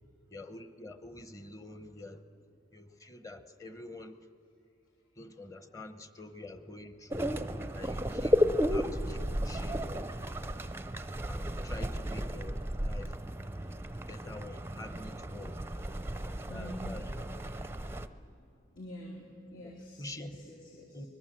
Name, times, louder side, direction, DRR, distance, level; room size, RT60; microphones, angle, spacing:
voice 1, 0.3-2.2 2.7-4.2 5.2-7.4 7.7-9.9 11.3-13.2 13.9-15.6 16.2-17.3 20.0-20.5 20.9-21.1, left 2 dB, 15° left, 9 dB, 1.0 m, -47 dB
sound 1, 7.1-18.1, equal, 10° right, 0.6 m, -33 dB
voice 2, 16.0-16.9 18.4-18.5 18.7-21.0, equal, 80° left, -2 dB, 3.3 m, -47 dB
24.5 x 21.5 x 7.7 m, 2.5 s
head